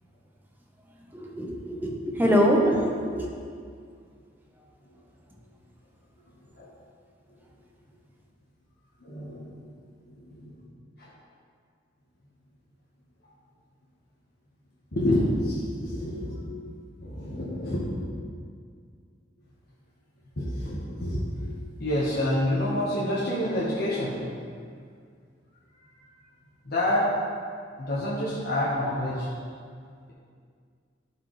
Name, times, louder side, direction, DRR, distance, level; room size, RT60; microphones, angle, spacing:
voice 1, 1.1-3.3, equal, 10° right, -1 dB, 0.9 m, -24 dB
voice 2, 6.3-6.7 7.3-7.4 9.0-9.5 10.0-10.7 11.0-11.1 14.9-16.4 17.0-18.0 20.4-21.3 21.8-24.2 26.6-27.1 27.8-29.3, left 1 dB, 55° left, -8 dB, 1.2 m, -28 dB
11.5 x 4.8 x 3.2 m, 2.2 s
head